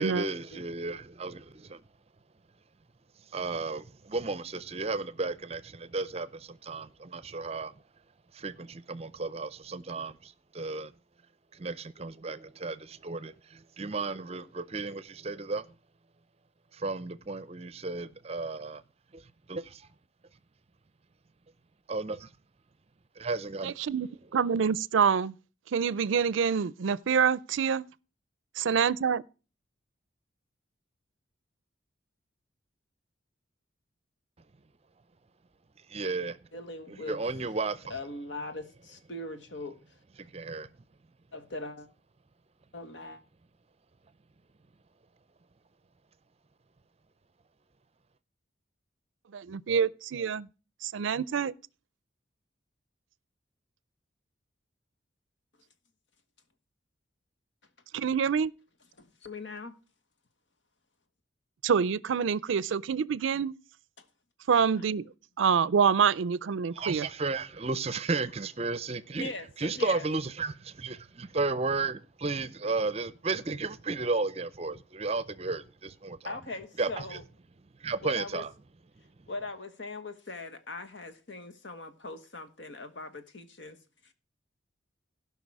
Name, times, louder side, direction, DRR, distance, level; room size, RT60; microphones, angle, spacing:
voice 1, 0.0-1.8 3.3-7.7 8.3-10.9 11.5-15.7 16.7-18.8 19.1-19.2 19.5-19.9 21.9-22.3 23.2-23.7 35.9-36.4 37.0-37.9 40.2-40.7 66.8-69.3 69.6-76.3 76.8-77.2 77.8-78.5, right 3 dB, 30° right, 0.6 m, -34 dB
voice 2, 23.6-25.3 25.7-27.8 28.6-29.2 49.3-50.5 50.8-51.5 57.9-58.5 61.6-63.5 64.5-65.1 65.4-67.1, right 6 dB, 85° right, 0.4 m, -26 dB
voice 3, 36.5-37.2 37.9-39.8 41.3-41.9 42.7-43.2 59.0-59.7 64.0-64.1 69.2-69.5 69.7-70.1 76.2-77.2 78.0-78.4 79.3-83.8 84.0-84.1, left 2 dB, 70° left, 1.4 m, -40 dB
16.5 x 5.7 x 4.7 m
head